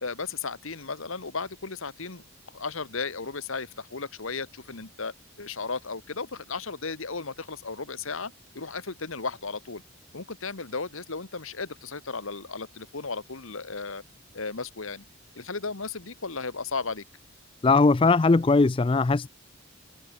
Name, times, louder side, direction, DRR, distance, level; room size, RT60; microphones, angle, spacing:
voice 1, 0.0-2.2 2.5-9.8 10.1-14.0 14.3-15.0 15.3-17.0, left 4 dB, 65° left, 1.4 m, -35 dB
voice 2, 17.6-19.3, left 3 dB, 25° left, 0.4 m, -20 dB
head